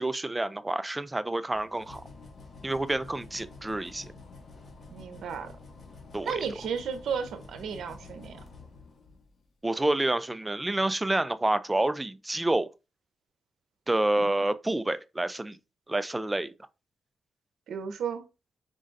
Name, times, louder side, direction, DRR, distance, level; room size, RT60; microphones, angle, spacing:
voice 1, 0.0-2.0 2.6-4.1 6.1-6.4 9.6-12.7 13.9-15.6 15.9-16.5, right 2 dB, 15° right, 0.4 m, -28 dB
sound 1, 1.5-9.4, left 3 dB, 50° left, 1.5 m, -49 dB
voice 2, 4.9-5.5 6.2-8.4 14.2-14.3 17.7-18.3, right 6 dB, 80° right, 0.7 m, -34 dB
5.1 x 3.7 x 2.6 m
cardioid pair, 85°, 0 cm